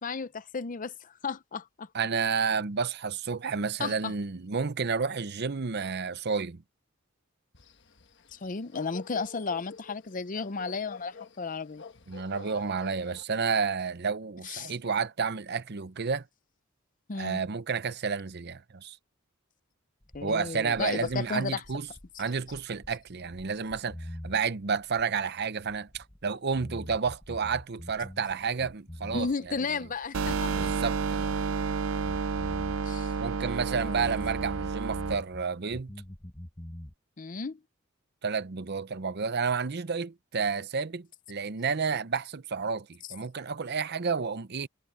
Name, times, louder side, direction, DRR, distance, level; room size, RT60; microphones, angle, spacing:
voice 1, 0.0-1.9 3.8-4.1 8.3-11.8 14.4-14.7 17.1-17.4 20.1-21.6 22.1-22.2 29.1-30.7 32.9-33.1 33.7-34.0 37.2-37.6, left 4 dB, 40° left, 0.6 m, -34 dB
voice 2, 1.9-6.6 12.1-16.2 17.2-19.0 20.2-21.9 22.2-29.3 30.5-31.3 33.2-35.9 38.2-44.7, right 5 dB, 55° right, 0.7 m, -31 dB
sound 1, 7.5-13.2, left 4 dB, 60° left, 1.3 m, -48 dB
sound 2, 20.0-26.2 26.5-29.6 29.8-31.7 32.0-35.4 35.7-36.9, left 1 dB, 15° left, 1.0 m, -44 dB
sound 3, 30.1-35.1, right 5 dB, 85° right, 0.6 m, -30 dB
head